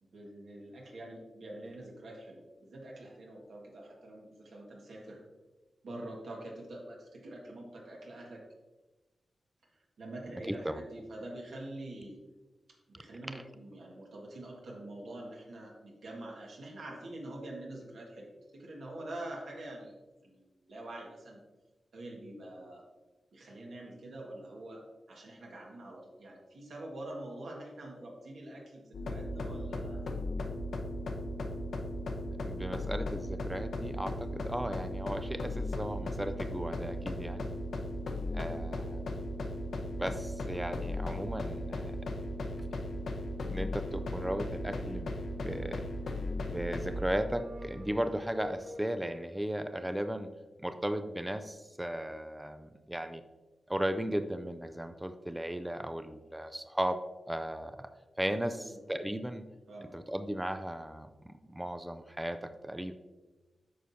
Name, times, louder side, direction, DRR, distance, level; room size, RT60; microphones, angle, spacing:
voice 1, 0.0-5.2 5.8-8.4 10.0-12.2 12.9-19.9 20.2-21.4 21.9-22.8 23.3-30.0 38.3-38.7 58.5-58.9 59.7-59.9, right 1 dB, 80° right, -2 dB, 1.7 m, -45 dB
voice 2, 10.5-10.8 13.3-13.4 32.5-37.5 38.3-39.2 40.0-41.9 43.4-45.1 45.4-45.9 46.5-50.3 50.6-53.2 53.7-57.0 57.3-57.9 58.2-59.4 59.9-62.9, right 1 dB, 5° right, 9 dB, 0.4 m, -36 dB
sound 1, 28.9-47.0, left 1 dB, 75° left, 0.8 m, -37 dB
sound 2, 46.8-49.3, left 1 dB, 55° right, 1.7 m, -44 dB
9.3 x 6.0 x 2.8 m, 1.2 s
wide cardioid pair, 135°, 0 cm